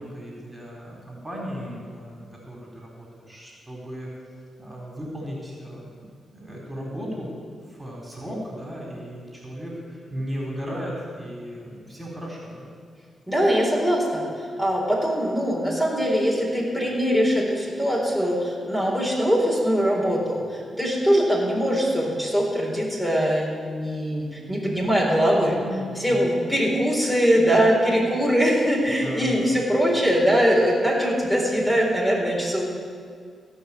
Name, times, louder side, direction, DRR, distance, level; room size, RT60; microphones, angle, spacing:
voice 1, 0.0-4.1 4.6-7.4 7.7-12.7 25.6-26.3 29.0-29.4, equal, 15° right, -2 dB, 3.8 m, -36 dB
voice 2, 13.3-25.6 26.0-32.7, equal, 10° left, -3 dB, 4.0 m, -22 dB
16.5 x 5.9 x 8.4 m, 2.1 s
cardioid pair, 60°, 0 cm